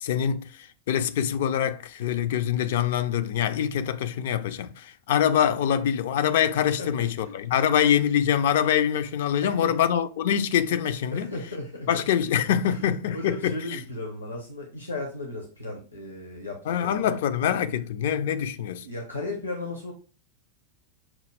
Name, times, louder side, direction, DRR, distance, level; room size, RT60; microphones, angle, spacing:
voice 1, 0.0-11.3 11.9-13.5 16.7-18.9, left 9 dB, 55° left, 0.4 m, -24 dB
voice 2, 6.8-7.3 9.4-9.7 11.1-11.9 12.6-12.8 13.1-17.2 18.8-19.9, left 2 dB, 85° left, 0.8 m, -35 dB
5.9 x 2.3 x 3.2 m
figure-of-eight pair, 90°, 0 cm